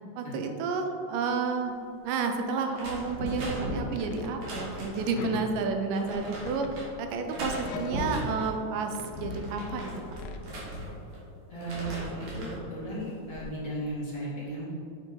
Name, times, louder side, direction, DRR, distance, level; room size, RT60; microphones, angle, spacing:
voice 1, 0.2-1.8 2.0-10.2, right 4 dB, 85° right, 5 dB, 2.3 m, -31 dB
sound 1, 2.7-5.2 5.9-6.9 7.3-8.5 9.0-11.2 11.5-12.6 13.1-13.5, equal, 60° right, 2.5 m, -37 dB
sound 2, 3.9-4.4 5.2-6.1 6.4-8.6 8.9-10.4, left 5 dB, 80° left, 1.7 m, -43 dB
voice 2, 4.7-5.3 7.6-7.7 11.5-14.7, right 1 dB, 35° left, -9 dB, 1.6 m, -36 dB
6.9 x 6.8 x 4.0 m, 2.6 s
omnidirectional pair, 3.8 m